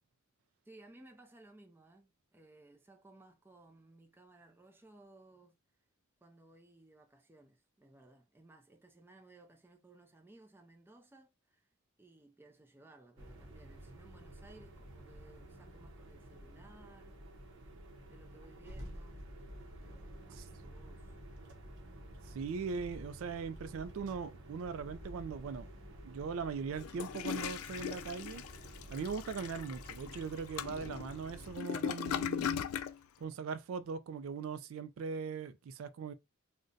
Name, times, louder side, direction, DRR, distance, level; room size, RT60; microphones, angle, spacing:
voice 1, 0.6-5.5 6.2-11.7 12.0-17.2 18.1-19.2 19.8-21.2, right 2 dB, 10° right, 0.4 m, -60 dB
sound 1, 13.2-31.6, right 1 dB, 60° right, 0.7 m, -51 dB
voice 2, 22.2-25.7 26.0-28.4 28.9-32.6 33.2-36.1, right 5 dB, 75° right, 0.3 m, -40 dB
Toilet flush, 26.8-33.0, left 8 dB, 90° left, 0.3 m, -39 dB
2.5 x 2.1 x 3.7 m
head